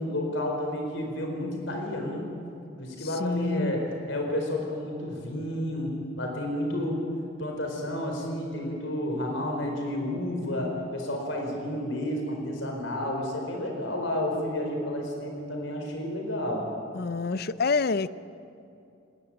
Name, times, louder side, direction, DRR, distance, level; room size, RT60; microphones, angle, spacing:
voice 1, 0.0-2.2 2.8-7.0 7.4-16.7, left 1 dB, 70° left, 1 dB, 4.5 m, -31 dB
voice 2, 3.0-3.8 16.9-18.1, left 4 dB, 50° left, 16 dB, 0.6 m, -27 dB
21.0 x 20.5 x 9.0 m, 2.6 s
head